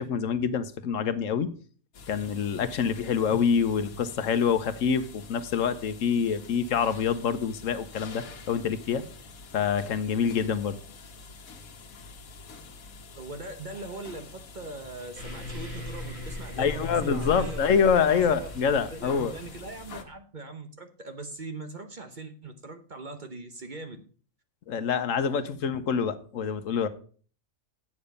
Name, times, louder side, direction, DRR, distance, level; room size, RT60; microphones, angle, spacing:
voice 1, 0.0-1.5 2.1-9.0 9.5-10.8 16.6-19.3 24.7-26.9, left 6 dB, 70° left, 1.1 m, -26 dB
sound 1, 1.9-20.0, left 4 dB, 85° left, 1.5 m, -47 dB
voice 2, 13.2-17.6 18.0-18.5 18.9-24.0, right 2 dB, 40° right, 0.9 m, -41 dB
sound 2, 15.1-20.1, left 1 dB, 75° right, 5.2 m, -38 dB
8.5 x 6.9 x 5.3 m
omnidirectional pair, 1.4 m